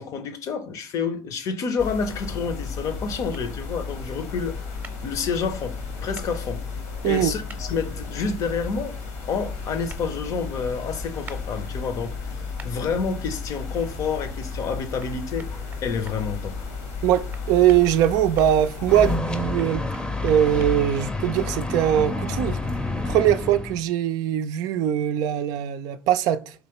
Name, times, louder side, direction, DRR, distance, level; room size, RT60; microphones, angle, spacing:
voice 1, 0.0-4.6 5.0-6.6 7.0-9.0 9.3-12.4 12.6-15.5 15.8-16.6, left 5 dB, 55° left, 0.7 m, -29 dB
sound 1, 1.8-19.2, left 4 dB, 80° left, 1.1 m, -34 dB
sound 2, 3.3-3.5 4.8-5.0 6.1-6.3 7.5-7.6 9.9-10.0 11.3-11.4 12.6-12.7 15.0-15.1 15.4-16.2 17.3-18.5 19.6-20.7, right 4 dB, 25° right, 0.7 m, -44 dB
voice 2, 17.0-19.8 20.2-22.6 23.1-26.4, right 11 dB, 65° right, 0.3 m, -21 dB
sound 3, 18.9-23.8, left 3 dB, 10° left, 0.6 m, -28 dB
3.8 x 3.0 x 2.9 m
hypercardioid pair, 65°, 7 cm